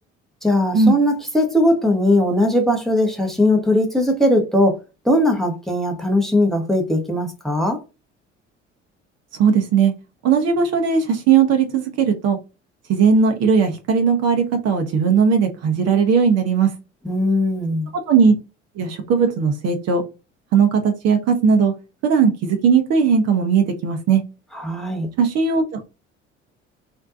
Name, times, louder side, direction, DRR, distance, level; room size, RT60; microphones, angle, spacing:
voice 1, 0.4-7.8 17.0-17.9 24.5-25.1, left 1 dB, ahead, 0.7 m, -19 dB
voice 2, 9.3-9.9 10.2-12.4 12.9-16.7 18.1-18.3 18.8-20.0 20.5-21.7 22.0-24.2 25.2-25.8, right 6 dB, 45° right, 0.6 m, -17 dB
2.6 x 2.2 x 2.4 m
figure-of-eight pair, 55°, 35 cm